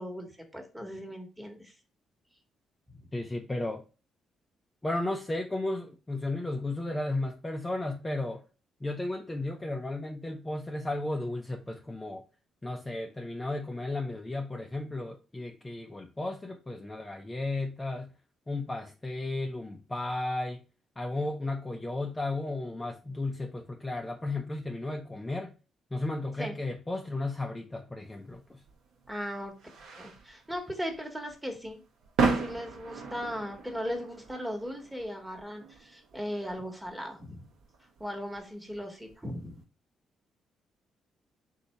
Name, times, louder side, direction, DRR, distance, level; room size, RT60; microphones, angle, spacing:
voice 1, 0.0-1.7 2.9-3.1 26.4-26.6 29.1-29.5 30.0-31.8 32.2-37.5 38.0-39.6, equal, 5° right, 1.2 m, -38 dB
voice 2, 3.1-3.8 4.8-8.4 8.8-12.2 12.6-18.1 18.5-20.6 21.0-25.5 25.9-28.6, left 2 dB, 15° left, 0.5 m, -34 dB
sound 1, 28.3-39.6, right 4 dB, 80° right, 0.9 m, -37 dB
4.0 x 2.7 x 4.3 m
cardioid pair, 90°, 0 cm